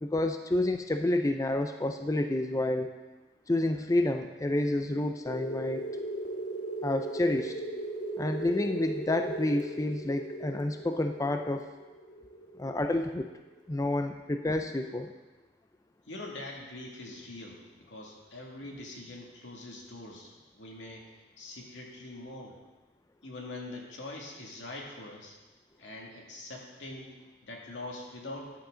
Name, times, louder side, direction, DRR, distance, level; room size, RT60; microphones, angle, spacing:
voice 1, 0.0-2.9 3.5-5.9 6.8-7.5 8.2-11.7 12.6-13.3 13.7-15.1, left 1 dB, 20° left, 6 dB, 0.4 m, -29 dB
sound 1, 5.3-13.6, right 1 dB, 45° left, 1.7 m, -38 dB
voice 2, 16.1-21.0 21.4-22.6 23.2-25.3 25.8-27.1 27.4-28.5, left 2 dB, 85° left, -1 dB, 2.3 m, -43 dB
13.5 x 10.5 x 3.9 m, 1.2 s
head